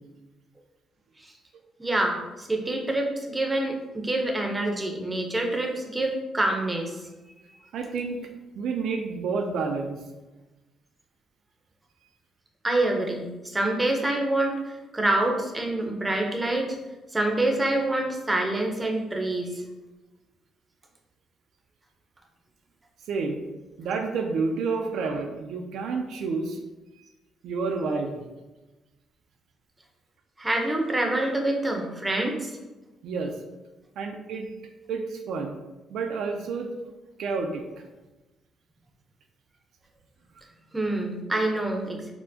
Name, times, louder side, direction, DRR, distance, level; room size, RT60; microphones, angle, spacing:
voice 1, 1.8-7.0 12.6-16.8 17.1-19.6 30.4-32.5 40.7-42.1, right 1 dB, 15° right, 2 dB, 0.6 m, -26 dB
voice 2, 7.7-8.2 8.5-10.0 23.1-23.4 23.8-26.6 27.4-28.2 33.0-33.3 34.0-34.5 34.9-35.6 35.9-36.7 37.2-37.6, right 4 dB, 75° right, 3 dB, 0.3 m, -29 dB
4.3 x 2.1 x 2.7 m, 1.1 s
cardioid pair, 90°, 0 cm